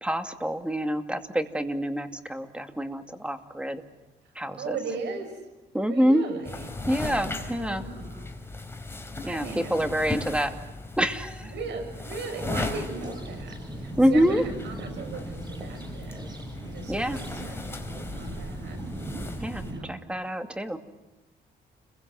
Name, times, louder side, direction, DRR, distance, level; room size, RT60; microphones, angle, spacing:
voice 1, 0.0-3.8 4.4-4.8 5.7-6.2 6.9-7.8 9.2-10.5 11.0-11.5 14.0-14.5 16.9-17.2 19.4-19.6 19.9-20.8, equal, 5° right, 6 dB, 2.5 m, -26 dB
voice 2, 4.5-5.3 5.8-6.7 7.5-8.3 9.1-10.3 11.4-16.3 16.6-17.8 18.1-18.8 19.5-20.0, right 4 dB, 80° right, 5 dB, 6.5 m, -38 dB
sound 1, 6.4-19.7, left 2 dB, 15° left, 4.2 m, -37 dB
sound 2, 12.9-19.8, right 1 dB, 25° right, 7.7 m, -39 dB
30.0 x 22.5 x 7.8 m, 1.1 s
cardioid pair, 105°, 18 cm